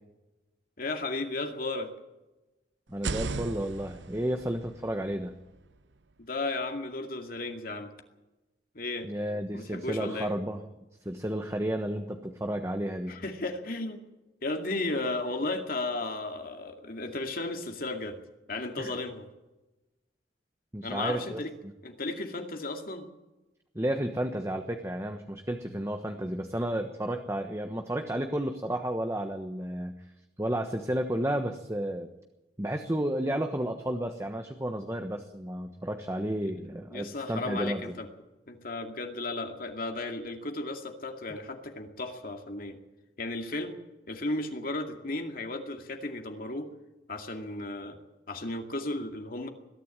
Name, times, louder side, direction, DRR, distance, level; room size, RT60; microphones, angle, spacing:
voice 1, 0.8-1.9 6.2-7.9 8.7-9.1 9.5-10.3 13.1-14.0 14.4-18.2 18.5-19.3 20.8-21.5 21.8-23.1 36.4-36.5 36.9-38.1 38.5-42.8 43.2-43.8 44.1-46.7 47.1-48.0 48.3-49.5, left 2 dB, 50° left, 4 dB, 2.3 m, -34 dB
voice 2, 2.9-5.3 9.0-10.6 11.0-13.2 18.8-18.9 20.7-21.4 23.7-29.9 30.4-32.1 32.6-37.8, right 1 dB, 15° right, 5 dB, 1.2 m, -32 dB
sound 1, 2.9-6.7, right 3 dB, 80° right, 0.8 m, -39 dB
21.5 x 13.5 x 9.0 m, 1.0 s
head